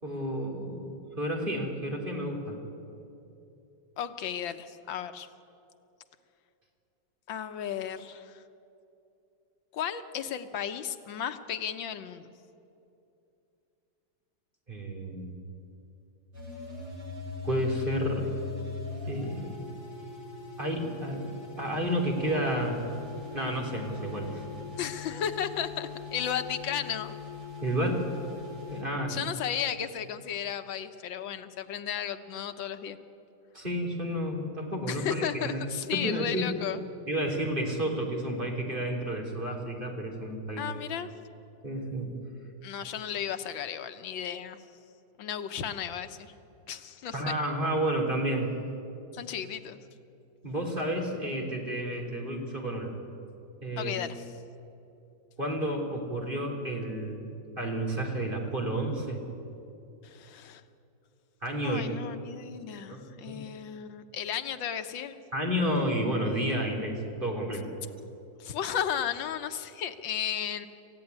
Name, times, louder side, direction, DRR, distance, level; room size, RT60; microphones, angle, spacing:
voice 1, 0.0-2.6 14.7-15.4 17.4-18.3 19.1-19.6 20.6-21.3 21.6-22.8 23.3-24.4 27.6-28.1 28.7-29.2 33.5-35.6 35.9-36.6 37.1-40.7 41.6-42.1 47.1-48.5 50.4-52.9 53.6-53.9 55.4-57.3 57.6-59.2 61.4-61.9 62.9-63.4 65.3-67.7, right 1 dB, 25° right, 0 dB, 3.6 m, -31 dB
voice 2, 4.0-5.3 7.3-8.4 9.7-12.3 24.8-27.2 29.1-33.0 34.9-36.8 40.6-41.2 42.6-44.6 45.2-46.3 46.7-47.3 49.1-49.8 53.8-54.1 60.0-60.6 61.6-65.2 68.4-70.7, left 9 dB, 90° left, 9 dB, 1.8 m, -34 dB
sound 1, 16.3-28.8, left 5 dB, 85° right, 6.7 m, -41 dB
27.5 x 15.5 x 9.7 m, 2.8 s
omnidirectional pair, 2.0 m